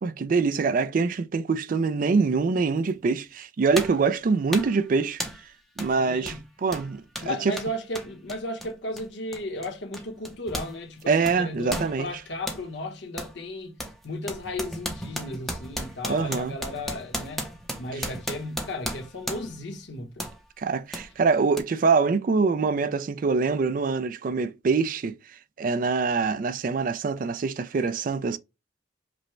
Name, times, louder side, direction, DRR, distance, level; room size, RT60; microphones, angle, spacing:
voice 1, 0.0-5.2 5.8-6.3 6.6-7.5 11.1-12.1 16.1-16.5 20.6-25.2 25.6-28.4, right 4 dB, 45° right, 0.3 m, -24 dB
sound 1, 2.9-3.0 3.7-4.1 4.5-4.8 5.2-5.5 5.8-5.9 6.2-10.7 11.0-12.6 13.2-13.4 13.8-19.6 20.2-20.4 20.9-21.1 21.6-21.7, equal, ahead, 0.6 m, -35 dB
voice 2, 6.0-6.4 7.2-13.8 14.0-17.5 17.8-20.3, left 1 dB, 65° left, 1.0 m, -35 dB
5.1 x 2.1 x 3.1 m
head